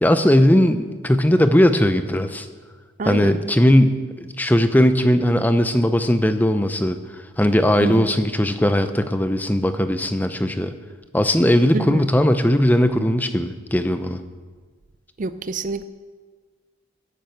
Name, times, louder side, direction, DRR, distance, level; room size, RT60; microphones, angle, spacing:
voice 1, 0.0-2.5 3.1-10.7 11.1-14.2, left 1 dB, 10° left, 0.6 m, -18 dB
voice 2, 3.0-3.4 7.8-8.1 11.7-12.1 15.2-15.8, right 3 dB, 35° right, 0.4 m, -27 dB
11.5 x 10.5 x 7.8 m
head